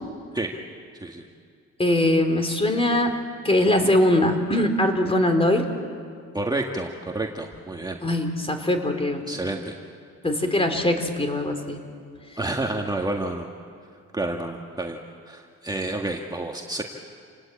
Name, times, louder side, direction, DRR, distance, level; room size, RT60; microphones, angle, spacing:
voice 1, 1.8-3.1 3.4-5.7 8.0-9.2 10.2-11.8, left 1 dB, 20° left, 6 dB, 3.5 m, -21 dB
voice 2, 6.3-8.0 9.3-9.8 12.4-13.5 14.1-15.0 15.3-16.8, right 2 dB, 15° right, 1 dB, 1.8 m, -29 dB
29.0 x 19.0 x 8.8 m, 2.2 s
cardioid pair, 90°, 30 cm